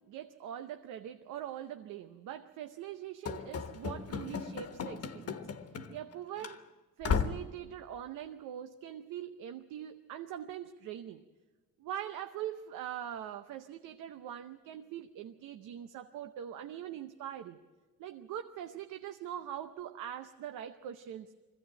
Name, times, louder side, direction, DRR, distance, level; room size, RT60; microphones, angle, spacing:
voice 1, 0.0-5.4 5.9-6.6 7.0-11.2 11.8-17.6 18.0-21.4, right 10 dB, 90° right, 8 dB, 0.8 m, -42 dB
Run / Slam, 3.2-6.1 6.4-6.6 7.0-7.5, left 6 dB, 55° left, 1.3 m, -35 dB
21.5 x 16.0 x 8.9 m, 1.3 s
cardioid pair, 90°, 30 cm